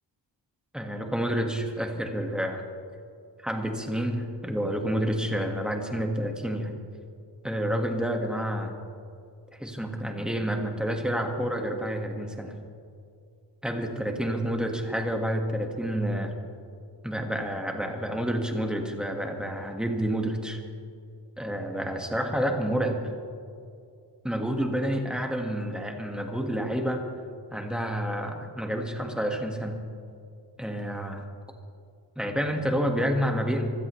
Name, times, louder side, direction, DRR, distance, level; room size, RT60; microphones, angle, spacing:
voice 1, 0.7-2.6 3.4-6.7 7.4-8.8 9.5-12.5 13.6-16.3 17.0-20.6 21.4-23.0 24.2-27.1 27.5-29.8 30.6-31.3 32.2-33.7, equal, ahead, 2 dB, 1.6 m, -29 dB
25.5 x 15.5 x 3.2 m, 2.3 s
wide cardioid pair, 170°, 45 cm